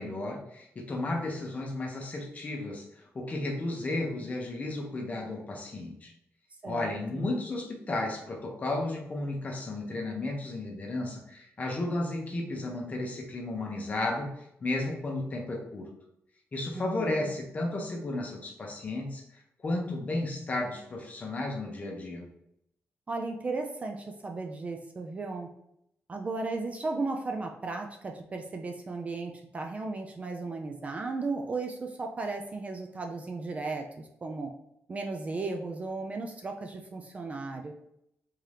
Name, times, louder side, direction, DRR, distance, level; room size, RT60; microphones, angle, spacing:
voice 1, 0.0-6.1 6.7-15.9 16.5-22.3, left 2 dB, 30° left, 1 dB, 0.8 m, -33 dB
voice 2, 6.6-7.3 16.7-17.4 23.1-25.5 26.1-34.5 34.9-37.7, right 3 dB, 30° right, 3 dB, 0.3 m, -35 dB
3.6 x 2.8 x 3.3 m, 0.77 s
wide cardioid pair, 170°, 5 cm